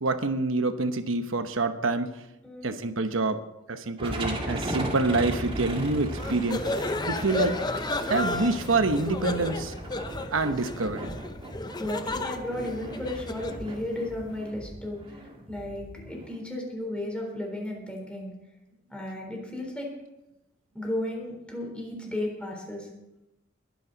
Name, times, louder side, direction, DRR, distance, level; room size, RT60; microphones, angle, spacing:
voice 1, 0.0-2.1 2.6-6.8 7.1-7.6 8.1-9.7 10.3-11.1, right 3 dB, 90° right, 9 dB, 1.0 m, -27 dB
voice 2, 2.4-2.8 11.8-15.0 15.5-18.3 18.9-19.9 20.7-22.9, left 1 dB, 5° left, -1 dB, 3.8 m, -34 dB
sound 1, 4.0-16.4, right 1 dB, 30° right, 2.2 m, -37 dB
sound 2, 6.2-13.6, left 2 dB, 20° left, 0.7 m, -33 dB
21.0 x 10.5 x 4.0 m, 0.94 s
head